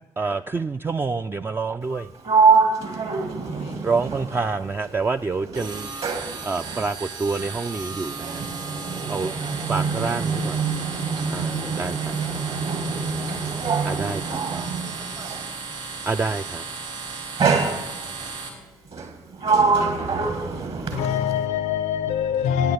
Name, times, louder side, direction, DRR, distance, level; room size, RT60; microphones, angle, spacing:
voice 1, 0.2-2.1 3.8-5.9 6.4-8.4 9.1-9.3 9.7-10.6 11.3-12.1 13.8-14.8 16.1-16.6, right 4 dB, 20° right, 0.3 m, -27 dB
Sliding door, 1.8-5.1 5.4-15.6 16.5-16.8 17.4-18.3 18.9-21.4, right 5 dB, 55° right, 1.7 m, -25 dB
voice 2, 3.0-3.3 8.7-10.6 11.5-13.3 13.7-14.2 14.5-15.4 16.8-16.9, right 4 dB, 35° right, 0.9 m, -47 dB
sound 1, 5.5-18.5, right 4 dB, 70° right, 3.4 m, -35 dB
voice 3, 20.9-22.7, left 8 dB, 65° left, 0.5 m, -24 dB
10.5 x 9.1 x 6.9 m
hypercardioid pair, 45°, 12 cm